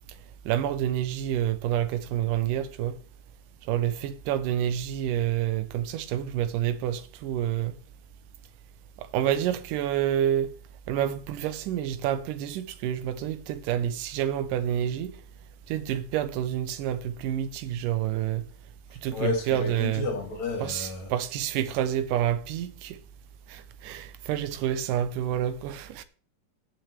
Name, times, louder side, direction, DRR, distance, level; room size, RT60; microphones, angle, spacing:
voice 1, 0.5-3.0 3.7-7.8 9.0-10.5 10.9-15.1 15.7-18.4 19.0-20.1 20.6-23.0 23.5-26.0, right 11 dB, 85° right, 2.3 m, -28 dB
voice 2, 19.1-21.1, left 3 dB, 60° left, 3.2 m, -31 dB
16.0 x 5.9 x 3.3 m
omnidirectional pair, 3.8 m